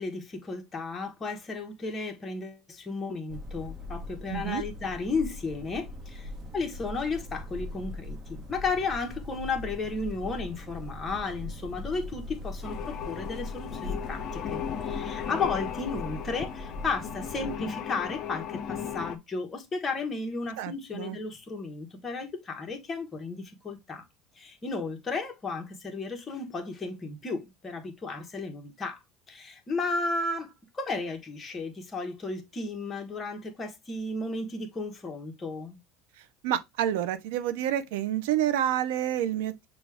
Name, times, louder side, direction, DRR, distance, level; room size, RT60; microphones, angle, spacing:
voice 1, 0.0-24.0 24.4-29.0 29.3-35.8, left 3 dB, 20° left, 1.0 m, -34 dB
sound 1, 3.3-17.6, left 2 dB, 30° right, 1.0 m, -40 dB
voice 2, 4.3-4.6 20.6-21.2 36.4-39.7, right 11 dB, 85° right, 0.5 m, -28 dB
sound 2, 12.6-19.2, left 9 dB, 45° left, 0.6 m, -36 dB
6.1 x 2.3 x 3.4 m
cardioid pair, 140°, 0 cm